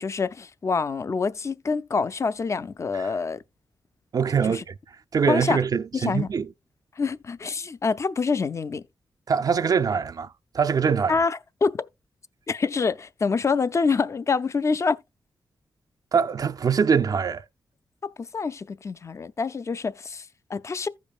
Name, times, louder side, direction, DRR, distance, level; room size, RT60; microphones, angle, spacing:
voice 1, 0.0-3.4 4.5-4.6 5.3-5.6 5.9-6.3 7.0-8.8 11.1-11.9 12.5-15.0 18.2-20.9, left 4 dB, 40° left, 0.5 m, -26 dB
voice 2, 4.1-4.7 5.1-6.5 9.3-11.2 16.1-17.5, right 6 dB, 50° right, 0.4 m, -23 dB
15.0 x 5.1 x 2.3 m
cardioid pair, 85°, 8 cm